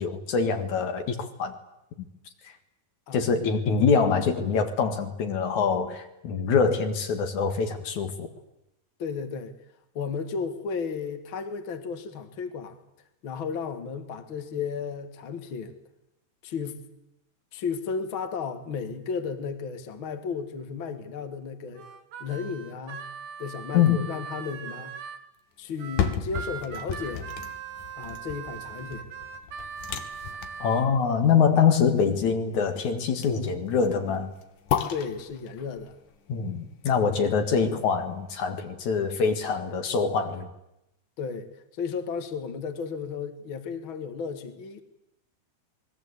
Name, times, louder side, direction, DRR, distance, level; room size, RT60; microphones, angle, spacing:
voice 1, 0.0-1.5 3.1-8.3 23.7-24.0 30.6-34.3 36.3-40.5, left 6 dB, 70° left, 6 dB, 3.3 m, -24 dB
voice 2, 9.0-9.5 9.9-12.8 13.2-15.8 16.4-16.8 17.5-21.9 22.2-23.0 23.4-24.9 25.6-27.3 28.0-29.1 34.9-36.0 41.2-44.8, left 5 dB, 45° left, 8 dB, 2.5 m, -34 dB
Harmonica, 21.8-25.2 25.8-30.9, right 7 dB, 85° right, 3.1 m, -40 dB
sound 1, 25.7-37.7 38.2-38.3, left 8 dB, 90° left, 3.2 m, -35 dB
28.0 x 21.0 x 8.3 m, 0.87 s
omnidirectional pair, 3.5 m